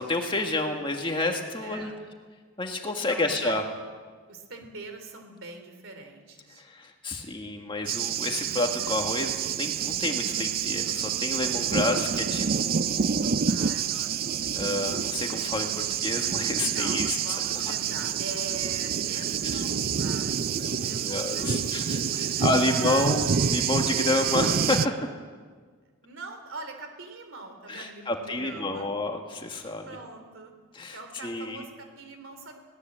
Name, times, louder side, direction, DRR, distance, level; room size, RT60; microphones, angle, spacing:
voice 1, 0.0-1.9 2.6-3.6 6.6-13.3 14.5-17.2 19.1-19.6 20.6-24.9 27.7-29.9 30.7-31.0 31.2-31.6, left 2 dB, 25° left, 3 dB, 1.8 m, -30 dB
voice 2, 1.6-2.0 3.1-3.6 4.3-6.6 13.5-14.3 16.7-23.2 23.6-23.8 26.0-28.9 29.9-30.5 30.9-32.5, right 3 dB, 65° right, 6 dB, 3.4 m, -42 dB
Thunder, 7.9-24.9, right 7 dB, 45° right, 0.5 m, -28 dB
21.5 x 18.0 x 7.6 m, 1.5 s
head